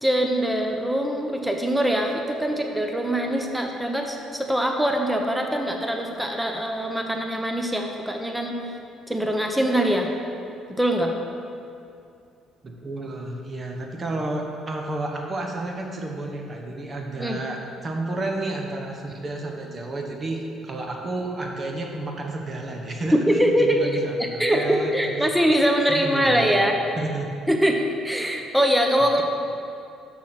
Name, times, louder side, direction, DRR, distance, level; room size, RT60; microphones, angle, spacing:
voice 1, 0.0-8.6 9.1-10.1 10.7-11.1 17.2-17.4 23.1-26.8 27.5-29.2, equal, 5° right, 2 dB, 1.0 m, -23 dB
voice 2, 12.6-25.4 25.9-26.7 27.0-27.3, right 2 dB, 35° right, 2 dB, 1.2 m, -31 dB
6.4 x 6.3 x 5.9 m, 2.5 s
hypercardioid pair, 55°, 0 cm